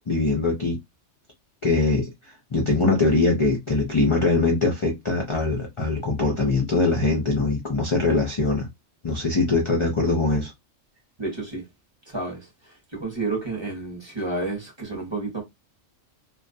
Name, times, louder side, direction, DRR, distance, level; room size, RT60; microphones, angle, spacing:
voice 1, 0.1-0.8 1.6-2.1 2.5-8.7 9.0-10.5, left 3 dB, 50° left, 0.3 m, -22 dB
voice 2, 11.2-11.6 12.1-12.5 12.9-15.4, right 3 dB, 25° right, 0.8 m, -30 dB
2.4 x 2.2 x 2.5 m
omnidirectional pair, 1.3 m